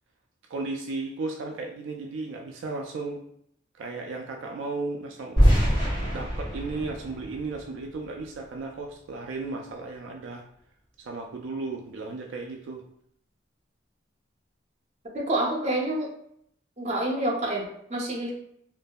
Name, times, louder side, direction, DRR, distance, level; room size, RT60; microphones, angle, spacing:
voice 1, 0.5-3.2 3.7-5.5 6.1-10.4 11.0-12.8, right 3 dB, 75° right, 2 dB, 0.3 m, -35 dB
sound 1, 5.4-8.3, equal, 30° left, 1.4 m, -24 dB
voice 2, 15.1-16.1 16.8-17.6 17.9-18.3, right 1 dB, 35° right, -3 dB, 0.6 m, -27 dB
2.7 x 2.5 x 2.2 m, 0.69 s
head